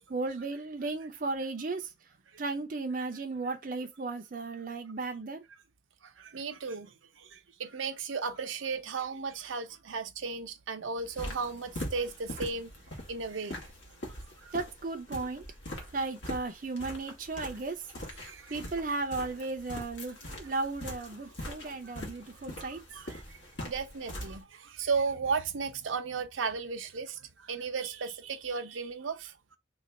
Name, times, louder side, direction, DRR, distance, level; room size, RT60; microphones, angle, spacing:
voice 1, 0.1-1.9 2.4-5.4 14.5-15.4 15.9-17.8 18.5-22.8, right 3 dB, 45° right, 0.5 m, -35 dB
voice 2, 6.2-12.7 13.1-13.7 14.4-14.5 18.2-18.6 20.2-20.5 22.6-23.4 23.7-29.6, right 5 dB, 85° right, 0.6 m, -35 dB
sound 1, 11.0-24.4, left 1 dB, 70° left, 1.4 m, -43 dB
3.1 x 2.3 x 4.0 m
head